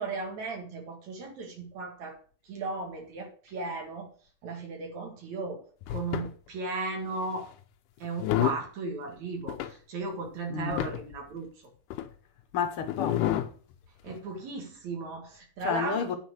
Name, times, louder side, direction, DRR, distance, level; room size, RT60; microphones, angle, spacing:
voice 1, 0.0-2.2 2.5-4.1 4.4-7.5 8.0-11.5 14.0-16.2, right 3 dB, 65° right, 3.3 m, -36 dB
sound 1, 5.8-6.3 7.2-7.5 8.0-8.7 9.5-9.7 10.3-10.4 10.6-11.2 11.9-12.1 12.9-13.5 14.1-14.2, left 13 dB, 85° left, 2.3 m, -29 dB
voice 2, 10.5-10.9 12.5-13.5 15.6-16.1, left 7 dB, 60° left, 1.5 m, -31 dB
9.1 x 4.7 x 6.4 m
omnidirectional pair, 3.6 m